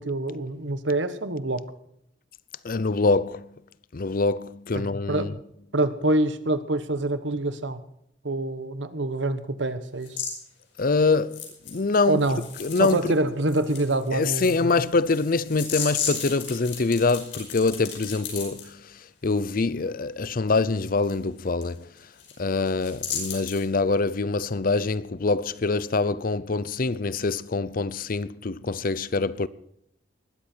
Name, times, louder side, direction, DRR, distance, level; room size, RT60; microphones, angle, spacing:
voice 1, 0.0-1.7 4.7-5.4 5.7-7.8 8.2-10.2 12.1-12.4 12.8-14.7, right 2 dB, 80° right, 1.3 m, -26 dB
voice 2, 2.6-3.5 3.9-5.3 10.8-12.2 12.6-13.1 14.1-21.9 22.4-29.5, left 3 dB, 50° left, 0.6 m, -25 dB
sound 1, 10.0-10.3 11.3-13.2 13.5-18.6 21.0-21.1 21.6-21.7 22.0-22.3 22.7-23.6, left 7 dB, 75° left, 5.3 m, -34 dB
19.5 x 13.5 x 4.5 m
head